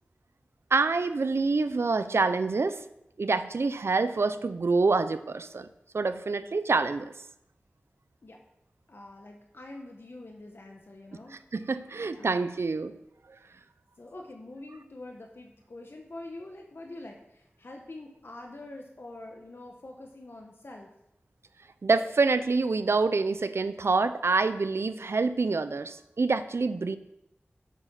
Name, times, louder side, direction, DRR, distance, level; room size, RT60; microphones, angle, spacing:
voice 1, 0.7-2.8 3.2-5.7 5.9-7.1 11.5-13.0 21.8-27.0, right 3 dB, 75° right, 12 dB, 0.6 m, -26 dB
voice 2, 8.9-11.3 11.9-12.3 14.0-20.9, left 2 dB, 60° left, 2 dB, 1.1 m, -45 dB
8.3 x 7.1 x 5.7 m, 0.85 s
wide cardioid pair, 55°, 4 cm